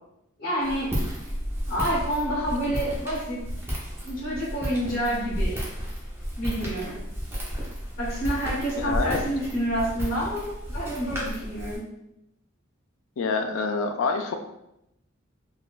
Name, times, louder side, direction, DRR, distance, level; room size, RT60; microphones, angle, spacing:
voice 1, 0.4-0.9 1.7-3.4 4.0-5.6 6.4-7.0 8.0-11.8, equal, 45° left, -8 dB, 0.8 m, -28 dB
Walk footsteps, 0.6-11.8, equal, 10° right, 0.6 m, -32 dB
voice 2, 8.8-9.2 13.2-14.3, left 4 dB, 75° left, 6 dB, 0.4 m, -26 dB
3.7 x 2.1 x 2.3 m, 0.84 s
head